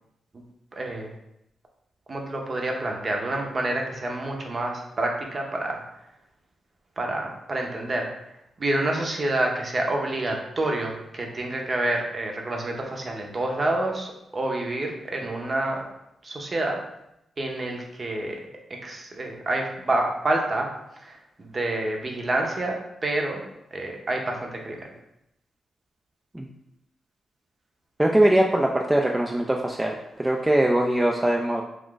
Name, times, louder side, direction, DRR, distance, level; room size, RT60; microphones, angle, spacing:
voice 1, 0.7-1.1 2.1-5.8 7.0-8.1 8.6-15.8 16.2-16.8 17.4-18.4 18.8-20.7 21.0-23.4 23.7-24.8, right 2 dB, 40° right, 1 dB, 0.7 m, -28 dB
voice 2, 28.0-31.6, right 1 dB, 15° right, 0 dB, 0.3 m, -21 dB
2.4 x 2.4 x 3.7 m, 0.83 s
cardioid pair, 55°, 0 cm